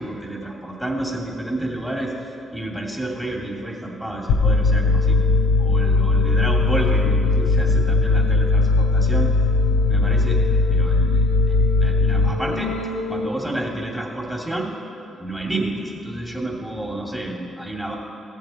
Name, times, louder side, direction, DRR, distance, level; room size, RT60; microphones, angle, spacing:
voice 1, 0.0-5.2 5.6-9.3 9.9-10.4 10.7-12.7 13.1-14.7 15.2-17.9, right 1 dB, 5° right, -1 dB, 2.5 m, -30 dB
sound 1, 4.3-13.3, left 3 dB, 80° left, 0.6 m, -19 dB
16.0 x 7.1 x 4.4 m, 2.6 s
hypercardioid pair, 40°, 0 cm